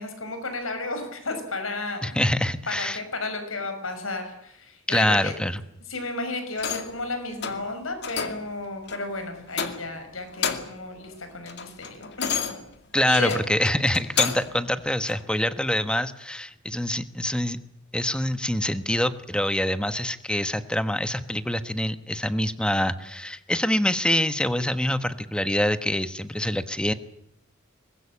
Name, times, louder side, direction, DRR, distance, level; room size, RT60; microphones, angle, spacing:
voice 1, 0.0-2.2 2.7-5.3 5.9-12.5 13.0-13.4, left 3 dB, 90° left, 8 dB, 5.9 m, -33 dB
voice 2, 2.0-3.0 4.9-5.6 12.9-17.6 17.9-26.9, left 1 dB, 5° left, 12 dB, 1.2 m, -25 dB
sound 1, 6.6-7.0 7.4-7.7 8.0-8.5 8.9-9.1 9.5-10.0 10.3-10.9 11.2-14.6 15.1-15.2, left 7 dB, 55° left, 2.4 m, -31 dB
23.5 x 20.5 x 8.6 m, 0.77 s
head